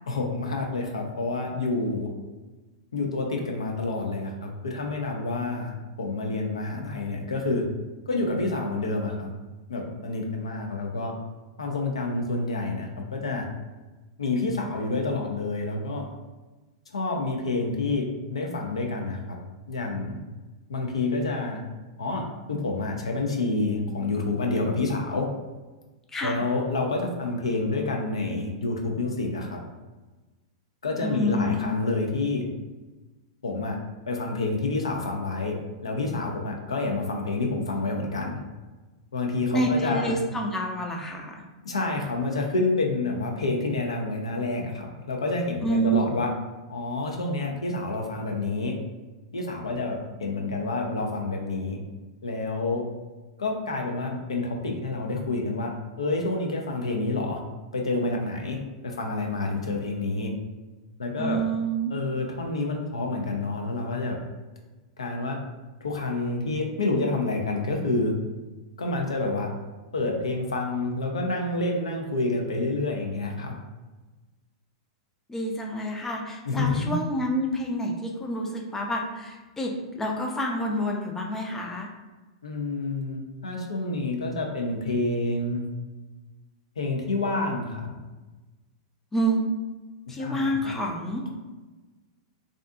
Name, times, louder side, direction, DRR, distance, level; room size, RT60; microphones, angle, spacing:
voice 1, 0.1-2.1 2.9-7.7 8.1-9.3 9.7-11.1 11.6-13.5 14.2-16.0 16.9-19.4 19.7-20.2 20.7-21.6 22.0-25.3 26.2-29.6 30.8-32.4 33.4-33.8 34.1-35.6 35.8-38.4 39.1-40.2 41.6-46.3 46.7-48.8 49.3-51.8 52.2-52.8 53.4-55.7 56.0-57.4 57.7-60.3 61.0-61.4 61.9-64.2 65.0-65.4 65.8-68.1 68.8-69.5 69.9-73.6 76.4-76.9 82.4-85.7 86.8-87.9 90.1-90.7, left 2 dB, 80° left, 1 dB, 0.4 m, -28 dB
voice 2, 26.1-26.5 31.0-31.7 39.5-41.4 45.6-46.2 61.2-61.9 75.3-79.7 80.0-81.9 89.1-89.4 90.1-91.2, right 1 dB, 10° left, 1 dB, 0.4 m, -28 dB
2.6 x 2.4 x 2.3 m, 1.2 s
hypercardioid pair, 105°, 3 cm